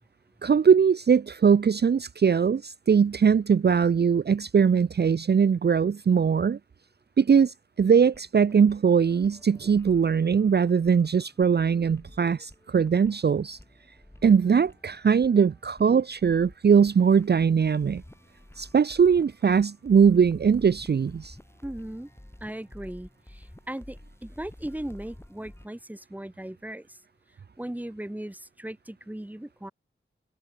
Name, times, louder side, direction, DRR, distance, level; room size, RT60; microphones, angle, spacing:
voice 1, 0.4-6.6 7.2-13.6 14.2-18.0 18.6-21.4, right 6 dB, 50° right, 0.5 m, -21 dB
sound 1, 8.1-25.7, left 1 dB, 10° left, 6.4 m, -51 dB
voice 2, 21.6-22.1 22.4-27.0 27.6-29.7, right 1 dB, 10° right, 1.3 m, -38 dB
wide cardioid pair, 90°, 21 cm